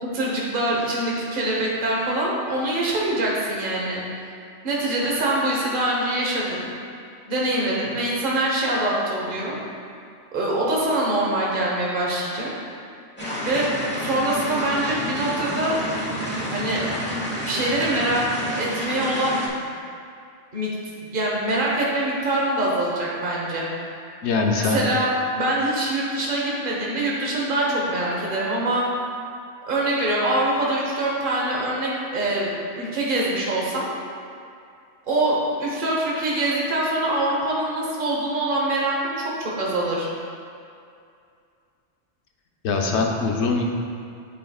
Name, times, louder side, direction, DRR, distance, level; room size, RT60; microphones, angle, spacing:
voice 1, 0.0-4.0 4.6-6.7 7.3-9.5 10.3-12.5 13.4-13.7 14.0-15.7 16.5-16.8 17.5-19.4 20.5-23.7 24.6-28.8 29.7-33.9 35.0-40.1, right 1 dB, 45° right, -4 dB, 1.3 m, -24 dB
sound 1, 13.2-19.5, equal, 10° left, 0.9 m, -29 dB
voice 2, 24.2-24.8 42.6-43.6, left 4 dB, 70° left, 1 dB, 1.0 m, -22 dB
11.0 x 4.5 x 2.4 m, 2.4 s
omnidirectional pair, 1.2 m